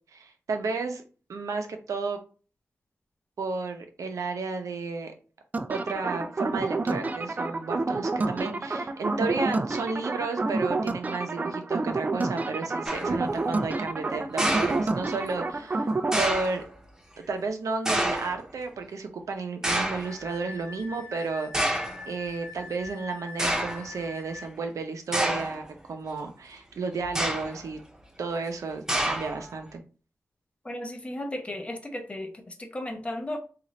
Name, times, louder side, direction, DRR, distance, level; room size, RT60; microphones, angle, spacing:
voice 1, 0.1-1.0 1.3-2.2 3.4-5.1 5.7-15.9 16.2-16.6 17.2-27.8 28.2-29.8, right 4 dB, 80° right, 0.7 m, -33 dB
sound 1, 5.5-16.2, right 3 dB, 30° right, 0.3 m, -29 dB
sound 2, 12.9-13.2 14.4-15.3 16.1-16.6 17.9-18.4 19.6-20.2 21.0-21.1 21.5-22.0 22.9-23.0 23.4-23.9 25.1-25.6 27.0-27.7 28.9-29.5, right 1 dB, 10° right, 0.8 m, -28 dB
Wind instrument woodwind instrument, 19.7-24.5, left 4 dB, 50° right, 1.0 m, -44 dB
voice 2, 30.6-32.3 32.6-33.4, left 1 dB, 25° left, 0.6 m, -34 dB
3.8 x 2.5 x 3.1 m
wide cardioid pair, 115°, 5 cm